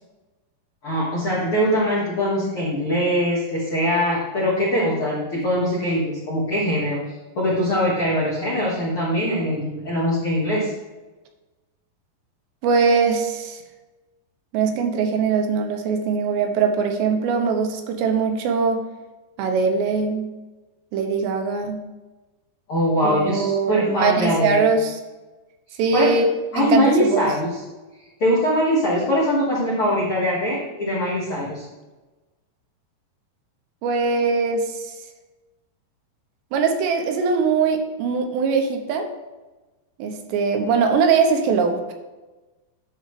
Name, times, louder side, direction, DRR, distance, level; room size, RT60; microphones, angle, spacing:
voice 1, 0.8-7.0 7.3-10.7 22.7-24.6 25.9-26.2 26.5-27.5 28.2-31.6, equal, 65° left, -5 dB, 1.3 m, -22 dB
voice 2, 12.6-13.6 14.5-18.9 19.4-20.3 20.9-21.8 23.0-25.0 25.8-26.2 26.5-27.3 33.8-34.9 36.5-39.1 40.0-41.9, right 5 dB, 85° right, 4 dB, 3.0 m, -21 dB
10.5 x 6.6 x 3.2 m, 1.2 s
omnidirectional pair, 5.1 m